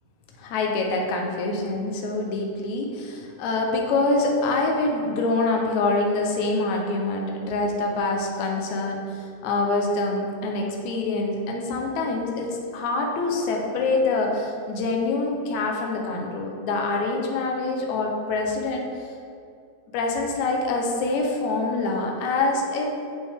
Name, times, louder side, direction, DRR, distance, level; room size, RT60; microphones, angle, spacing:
voice 1, 0.4-18.9 19.9-22.9, left 3 dB, 80° left, 1 dB, 2.3 m, -25 dB
9.9 x 6.0 x 3.6 m, 2.4 s
omnidirectional pair, 3.3 m